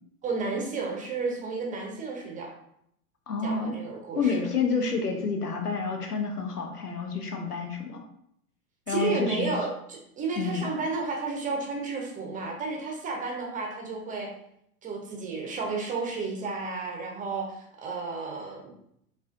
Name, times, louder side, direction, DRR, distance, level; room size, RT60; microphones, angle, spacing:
voice 1, 0.2-2.5 3.4-4.5 8.9-14.3 14.8-18.7, right 4 dB, 20° right, 0 dB, 0.7 m, -32 dB
voice 2, 3.3-3.8 4.2-8.0 8.9-9.5 10.4-10.7, left 5 dB, 90° left, 3 dB, 0.8 m, -29 dB
4.7 x 2.4 x 2.5 m, 0.74 s
figure-of-eight pair, 90°, 45 cm